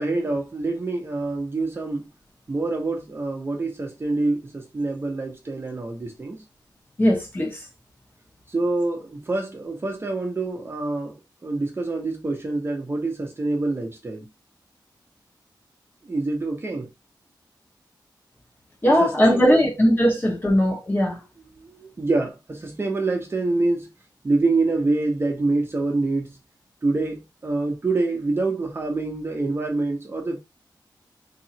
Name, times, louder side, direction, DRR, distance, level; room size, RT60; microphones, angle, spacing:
voice 1, 0.0-2.1 2.5-6.4 8.5-11.1 11.4-14.3 16.0-16.9 18.9-19.7 21.6-23.9 24.2-26.4 26.8-30.4, right 2 dB, 30° right, 0.8 m, -26 dB
voice 2, 7.0-7.5 18.8-21.2, equal, 25° left, 1.2 m, -19 dB
3.8 x 2.8 x 2.8 m
wide cardioid pair, 140°, 8 cm